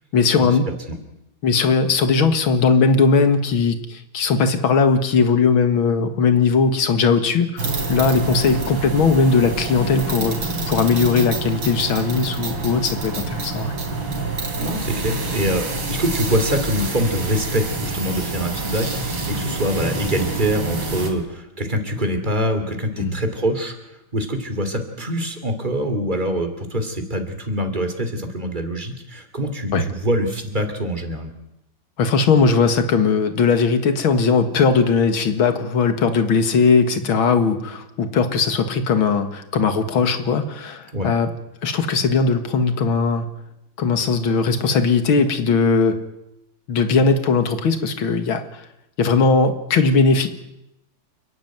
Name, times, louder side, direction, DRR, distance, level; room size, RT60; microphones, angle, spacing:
voice 1, 0.1-0.7 1.4-10.4 10.7-13.7 23.0-23.1 29.7-29.9 32.0-41.3 41.6-43.3 43.8-46.0 46.7-48.6 49.0-50.3, left 4 dB, 90° left, 9 dB, 2.5 m, -19 dB
sound 1, 7.6-21.1, right 3 dB, 70° right, 4.0 m, -27 dB
voice 2, 14.6-23.8 24.1-31.3 40.9-41.1, equal, 25° right, 6 dB, 3.0 m, -24 dB
30.0 x 11.5 x 9.3 m, 0.87 s
omnidirectional pair, 2.2 m